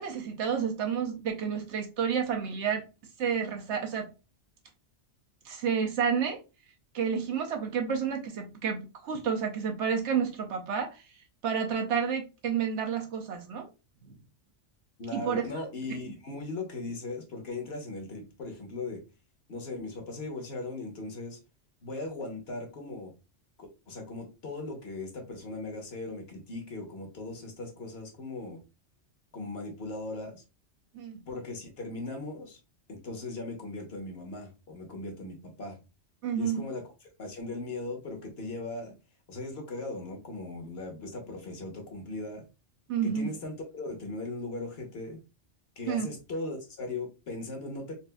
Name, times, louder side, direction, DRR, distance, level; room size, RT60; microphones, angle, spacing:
voice 1, 0.0-2.8 3.2-4.1 5.4-6.4 6.9-11.1 11.4-13.7 14.1-14.2 15.1-15.4 15.9-16.0 30.9-31.2 36.2-36.7 42.9-43.3 45.9-46.1, right 7 dB, 80° right, 0.9 m, -30 dB
voice 2, 15.0-19.0 19.5-21.4 21.8-23.1 23.6-28.6 29.3-30.4 31.3-32.6 32.9-35.8 36.4-36.8 37.2-38.9 39.3-42.5 43.0-45.2 45.8-47.9, left 2 dB, 60° left, 1.2 m, -38 dB
4.1 x 2.4 x 2.2 m
omnidirectional pair, 1.2 m